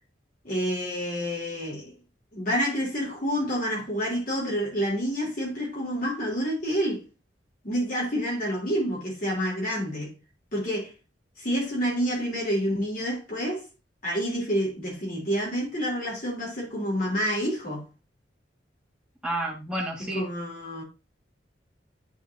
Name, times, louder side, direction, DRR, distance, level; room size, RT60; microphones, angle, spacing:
voice 1, 0.4-2.0 2.3-7.0 7.6-10.1 10.5-10.9 11.4-13.6 14.0-17.9 20.1-20.8, equal, 45° left, 3.0 m, -28 dB
voice 2, 19.2-20.2, right 1 dB, 5° right, 1.8 m, -30 dB
10.5 x 4.5 x 2.6 m
head